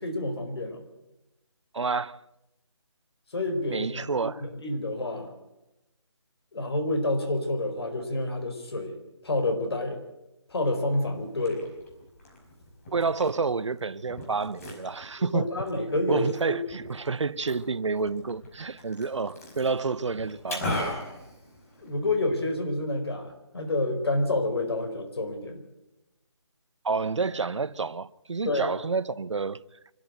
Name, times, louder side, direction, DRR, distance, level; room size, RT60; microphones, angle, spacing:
voice 1, 0.0-0.8 3.3-3.9 4.2-5.3 6.5-10.0 10.5-11.7 15.2-16.6 21.8-25.6 28.4-28.8, left 2 dB, 60° left, 4.5 m, -28 dB
voice 2, 1.7-2.2 3.7-4.4 12.9-15.5 16.1-21.0 26.8-29.7, right 4 dB, 75° right, 0.8 m, -29 dB
Liquid, 11.1-22.1, left 1 dB, 30° left, 5.1 m, -40 dB
25.0 x 13.5 x 8.0 m
figure-of-eight pair, 165°, 15 cm